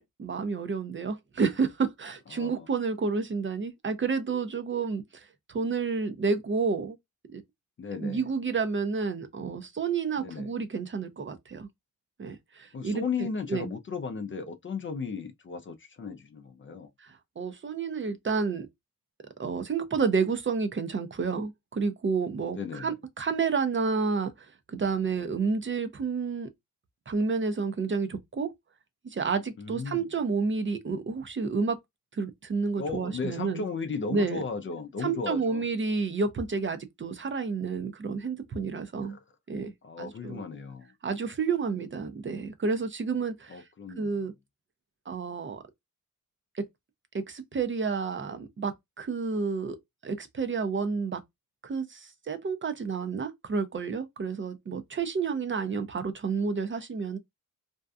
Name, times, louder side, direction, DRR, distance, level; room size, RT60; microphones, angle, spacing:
voice 1, 0.0-7.0 7.3-7.4 7.9-11.7 12.2-13.7 17.0-18.7 19.4-24.3 24.7-26.5 27.1-28.5 29.0-31.8 32.1-33.6 34.1-34.4 35.0-39.2 39.5-39.7 40.0-40.4 41.0-43.6 44.0-44.3 45.1-45.6 46.6-46.7 47.1-49.8 50.0-51.2 51.6-57.2, right 5 dB, 35° right, 0.5 m, -30 dB
voice 2, 2.3-2.7 7.8-8.3 10.2-10.5 12.7-16.9 22.4-22.9 29.6-30.1 32.8-35.6 39.1-39.2 39.8-40.9 43.5-44.1, left 5 dB, 35° left, 0.5 m, -35 dB
2.6 x 2.2 x 2.3 m
cardioid pair, 65°, 35 cm